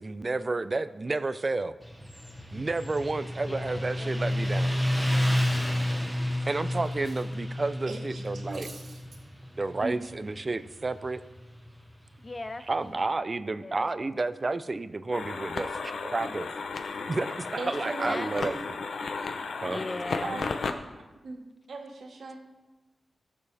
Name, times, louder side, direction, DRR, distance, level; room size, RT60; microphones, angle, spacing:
voice 1, 0.0-1.8 2.5-4.8 6.2-8.7 9.6-11.2 12.7-16.5 17.1-18.6 19.6-19.8, right 3 dB, 35° right, 13 dB, 0.5 m, -31 dB
Motorcycle, 1.8-12.9, left 1 dB, 5° right, 1.2 m, -31 dB
voice 2, 3.4-6.1 12.2-12.9 13.6-14.1 18.0-18.3 19.7-20.4, left 2 dB, 25° left, 11 dB, 0.5 m, -41 dB
Cutlery silverware, 4.2-7.3 7.6-7.8 8.2-9.2, right 3 dB, 60° right, 2.1 m, -52 dB
voice 3, 7.8-8.6 9.8-10.1 17.6-18.5 20.2-20.5 21.2-22.4, right 3 dB, 80° right, 1 dB, 2.0 m, -38 dB
sound 1, 15.1-20.7, left 4 dB, 80° left, 0.8 m, -34 dB
19.0 x 6.9 x 3.4 m, 1.1 s
wide cardioid pair, 120°, 0 cm